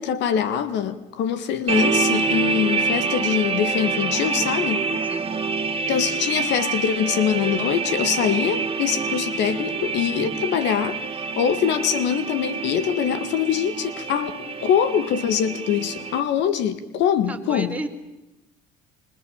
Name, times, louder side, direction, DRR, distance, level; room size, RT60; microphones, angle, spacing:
voice 1, 0.0-4.8 5.9-11.0 11.4-17.7, left 8 dB, 75° left, 12 dB, 1.9 m, -23 dB
sound 1, 1.7-16.2, right 4 dB, 30° right, 2.0 m, -26 dB
voice 2, 5.0-5.4 17.3-17.9, right 1 dB, 10° right, 4 dB, 3.8 m, -33 dB
26.5 x 24.5 x 8.8 m, 0.96 s
supercardioid pair, 90°, 19 cm